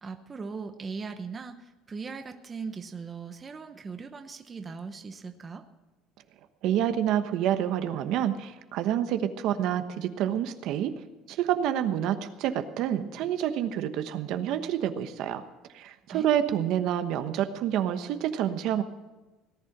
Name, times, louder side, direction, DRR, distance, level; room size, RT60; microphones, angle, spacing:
voice 1, 0.0-5.7 16.1-16.3, right 5 dB, 20° right, 7 dB, 0.9 m, -39 dB
voice 2, 6.6-10.9 11.3-15.4 15.7-18.8, right 10 dB, 60° right, 9 dB, 1.1 m, -28 dB
18.0 x 11.0 x 6.0 m, 1.1 s
cardioid pair, 155°, 0 cm